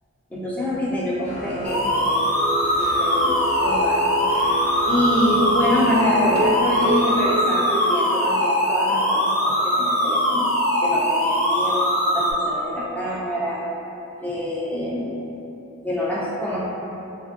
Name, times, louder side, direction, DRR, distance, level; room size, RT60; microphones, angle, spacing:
voice 1, 0.3-1.8 2.1-4.0 4.9-10.5 10.8-11.9 12.1-13.7 14.2-15.2 15.8-16.6, left 1 dB, 5° left, -7 dB, 0.3 m, -26 dB
sound 1, 1.2-7.2, equal, 35° left, 0.7 m, -29 dB
sound 2, 1.6-12.3, equal, 80° left, 0.6 m, -21 dB
sound 3, 6.3-8.8 9.1-9.2 9.6-9.7 10.1-10.2, left 1 dB, 70° right, 0.4 m, -28 dB
3.3 x 2.5 x 2.4 m, 2.9 s
head